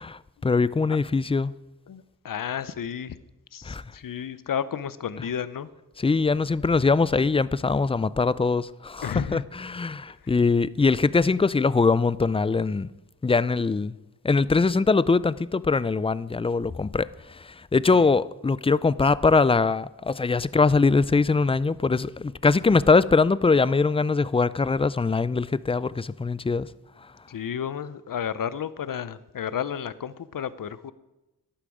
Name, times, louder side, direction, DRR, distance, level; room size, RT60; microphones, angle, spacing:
voice 1, 0.0-1.5 3.7-3.8 6.0-12.9 13.2-13.9 14.2-26.7, left 4 dB, 15° left, 0.3 m, -22 dB
voice 2, 1.9-3.2 3.5-5.7 9.0-9.4 10.2-10.3 17.9-18.1 27.3-30.9, left 8 dB, 60° left, 0.7 m, -32 dB
11.5 x 10.0 x 4.9 m
wide cardioid pair, 75°, 38 cm